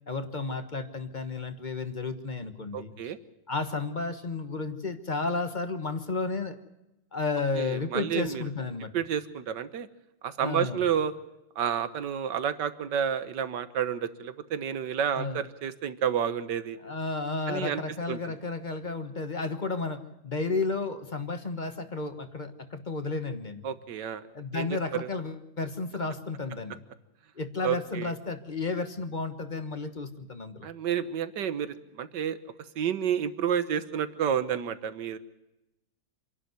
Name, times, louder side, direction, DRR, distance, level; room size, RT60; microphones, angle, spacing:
voice 1, 0.1-3.1 3.5-6.6 7.1-8.9 10.4-10.8 15.1-15.4 16.8-23.6 24.3-26.8 27.4-30.7, left 3 dB, 25° left, 9 dB, 1.3 m, -32 dB
voice 2, 2.7-3.2 7.6-8.4 8.9-9.9 10.2-11.1 11.6-16.8 17.5-17.8 18.1-18.4 23.6-24.2 24.5-24.7 25.0-25.1 27.6-28.1 30.6-32.4 32.8-35.2, right 8 dB, 70° right, 12 dB, 1.8 m, -30 dB
27.0 x 11.5 x 9.5 m, 0.93 s
omnidirectional pair, 2.0 m